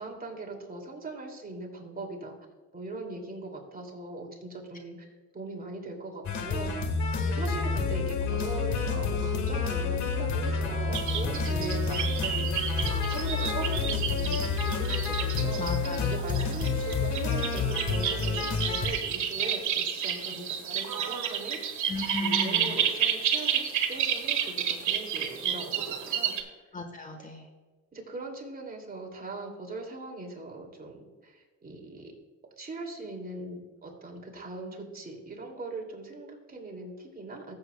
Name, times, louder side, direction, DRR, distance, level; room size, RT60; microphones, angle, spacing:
voice 1, 0.0-2.4 2.7-5.1 5.3-6.7 7.3-12.7 13.1-21.9 22.2-23.6 23.9-26.5 27.9-32.1 32.6-37.5, right 2 dB, 30° right, 0 dB, 2.6 m, -40 dB
sound 1, 6.3-18.9, left 4 dB, 70° left, 1.5 m, -29 dB
sound 2, 10.9-26.4, right 8 dB, 75° right, 1.6 m, -31 dB
voice 2, 15.6-16.1 16.3-16.7 21.9-22.7 26.7-27.5, left 2 dB, 25° left, 5 dB, 1.3 m, -36 dB
15.0 x 8.0 x 2.3 m, 1.4 s
cardioid pair, 90°, 30 cm